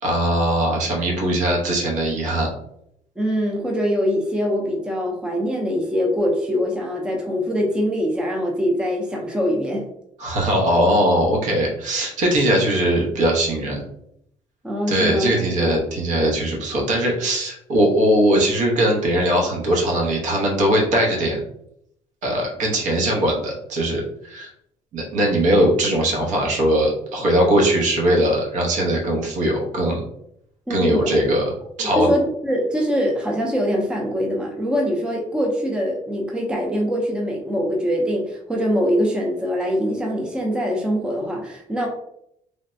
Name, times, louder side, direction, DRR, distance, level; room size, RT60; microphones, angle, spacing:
voice 1, 0.0-2.5 10.2-13.8 14.9-21.4 22.2-24.5 24.9-30.0 30.7-31.4 31.8-32.1, right 1 dB, 70° right, -1 dB, 0.9 m, -20 dB
voice 2, 3.2-9.8 14.6-15.3 30.7-31.1 31.8-41.9, equal, 5° right, -1 dB, 0.4 m, -23 dB
3.3 x 2.1 x 2.5 m, 0.75 s
cardioid pair, 140°, 13 cm